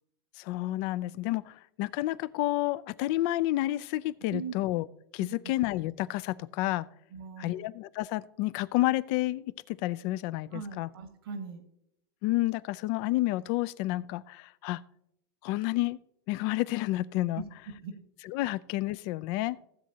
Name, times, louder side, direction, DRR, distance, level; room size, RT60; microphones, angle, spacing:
voice 1, 0.4-4.8 5.1-6.9 7.4-10.9 12.2-14.8 15.4-16.0 16.3-17.4 18.2-19.6, left 17 dB, 55° left, 0.4 m, -30 dB
voice 2, 7.1-7.6 10.5-11.6 17.3-18.0, right 5 dB, 85° right, 1.4 m, -40 dB
16.0 x 7.5 x 2.8 m
hypercardioid pair, 110°, 12 cm